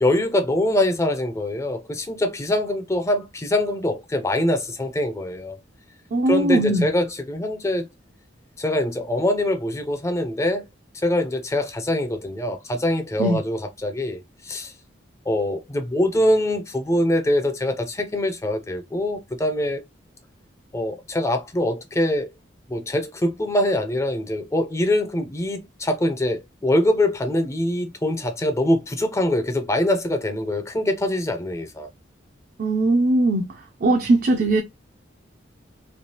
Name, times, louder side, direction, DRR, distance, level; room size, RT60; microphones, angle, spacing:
voice 1, 0.0-5.6 6.3-7.8 8.6-10.6 11.0-14.7 15.3-19.8 20.7-22.3 22.7-31.9, left 1 dB, 15° left, 0.4 m, -23 dB
voice 2, 6.1-6.9 13.2-13.4 32.6-33.5 33.8-34.6, right 2 dB, 45° right, 0.4 m, -19 dB
3.2 x 2.3 x 2.8 m
head